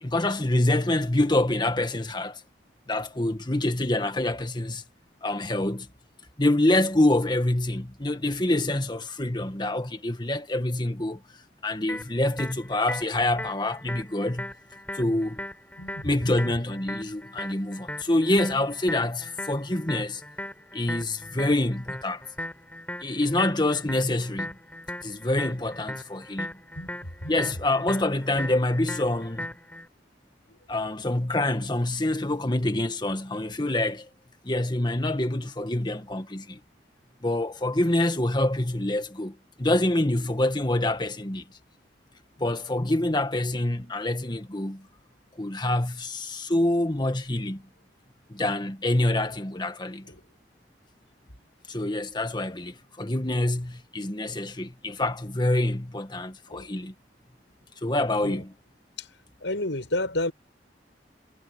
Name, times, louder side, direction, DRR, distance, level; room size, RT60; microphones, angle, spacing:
voice 1, 0.0-2.4 2.9-4.8 5.2-5.9 6.4-11.2 11.6-14.5 14.9-15.4 16.0-20.2 20.7-22.2 23.0-24.6 25.0-26.6 27.3-29.5 30.7-34.1 34.4-36.6 37.2-41.4 42.4-44.9 45.4-47.6 48.3-50.1 51.7-56.9 57.8-58.5, left 1 dB, 25° left, 1.8 m, -26 dB
sound 1, 11.9-29.9, left 1 dB, 10° left, 4.5 m, -38 dB
voice 2, 15.8-16.6 26.8-27.6 30.7-31.1 50.0-50.2 53.3-53.6 56.5-56.7 58.2-58.4 59.0-59.1 59.4-60.3, left 1 dB, 85° left, 7.1 m, -33 dB
head